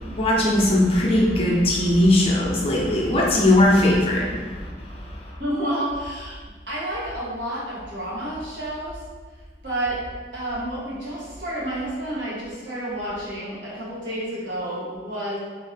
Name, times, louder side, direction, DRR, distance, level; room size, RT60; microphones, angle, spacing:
voice 1, 0.1-4.4, left 1 dB, 35° left, -4 dB, 0.6 m, -19 dB
voice 2, 5.4-6.4 6.7-9.0 9.6-10.0 10.3-15.4, right 1 dB, 75° right, -7 dB, 1.4 m, -30 dB
3.5 x 2.7 x 3.3 m, 1.4 s
head